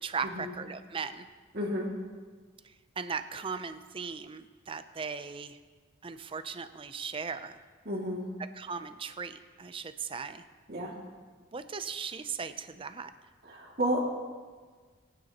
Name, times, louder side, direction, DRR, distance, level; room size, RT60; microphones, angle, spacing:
voice 1, 0.0-1.3 2.6-5.6 6.0-7.6 8.6-10.4 11.5-13.1, right 5 dB, 30° right, 10 dB, 0.5 m, -38 dB
voice 2, 1.5-1.9 7.8-8.3 10.7-10.9 13.4-14.1, equal, 50° right, -2 dB, 2.3 m, -31 dB
22.5 x 9.4 x 2.9 m, 1.5 s
head